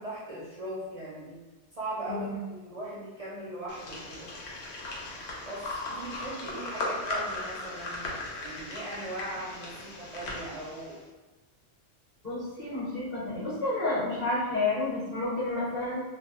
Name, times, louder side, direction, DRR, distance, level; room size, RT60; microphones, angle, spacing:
voice 1, 0.0-1.4 1.7-4.3 5.5-11.0, right 1 dB, 55° right, -8 dB, 0.4 m, -39 dB
sound 1, 3.7-11.0, left 2 dB, 70° left, 0.8 m, -37 dB
voice 2, 12.2-16.0, left 2 dB, 40° left, -8 dB, 0.9 m, -30 dB
2.2 x 2.0 x 2.9 m, 1.2 s
omnidirectional pair, 1.2 m